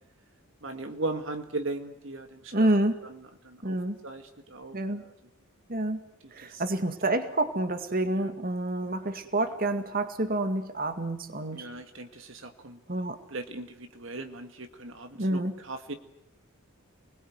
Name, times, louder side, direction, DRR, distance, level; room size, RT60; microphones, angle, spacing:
voice 1, 0.6-3.2 3.4-3.8 4.0-5.1 6.4-6.6 8.1-8.3 11.5-12.8 13.3-15.9, right 2 dB, 60° right, 7 dB, 1.9 m, -38 dB
voice 2, 2.5-3.0 3.6-4.0 4.7-5.0 5.7-6.0 6.3-11.7 12.9-13.2 15.2-15.6, right 1 dB, 45° right, 9 dB, 2.0 m, -28 dB
28.5 x 21.0 x 9.5 m, 0.81 s
head